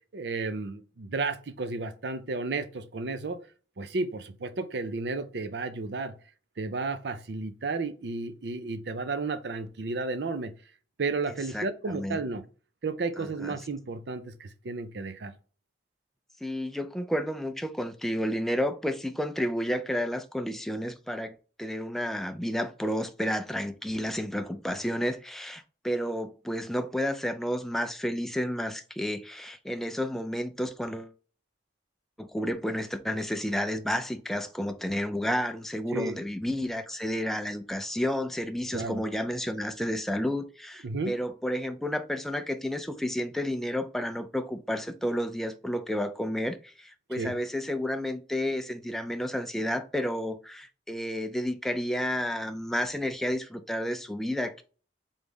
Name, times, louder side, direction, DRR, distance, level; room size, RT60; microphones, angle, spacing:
voice 1, 0.1-3.4 3.8-6.1 6.6-10.5 11.0-12.4 12.8-15.3 35.9-36.2 38.7-39.0 40.8-41.1 47.2-47.3, right 3 dB, 65° right, 0.5 m, -32 dB
voice 2, 11.5-12.2 13.2-13.5 16.4-31.1 32.2-54.6, equal, ahead, 0.4 m, -31 dB
3.9 x 3.5 x 3.6 m
head